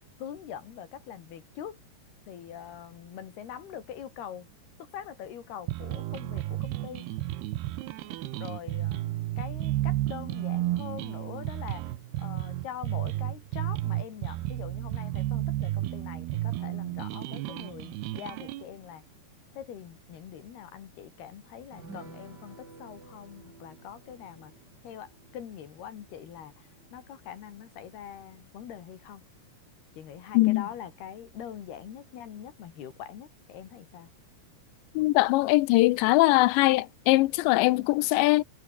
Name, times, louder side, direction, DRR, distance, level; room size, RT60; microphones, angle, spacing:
voice 1, 0.2-1.8 2.3-4.5 4.8-7.1 8.4-19.0 19.5-24.5 24.8-29.2 29.9-34.1, left 9 dB, 65° left, 4.2 m, -43 dB
sound 1, 5.7-18.6, right 15 dB, 70° right, 2.8 m, -32 dB
sound 2, 21.7-28.5 28.8-28.9 29.2-29.4, right 3 dB, 25° right, 4.9 m, -52 dB
voice 2, 35.0-38.4, left 19 dB, 85° left, 3.0 m, -21 dB
omnidirectional pair, 5.2 m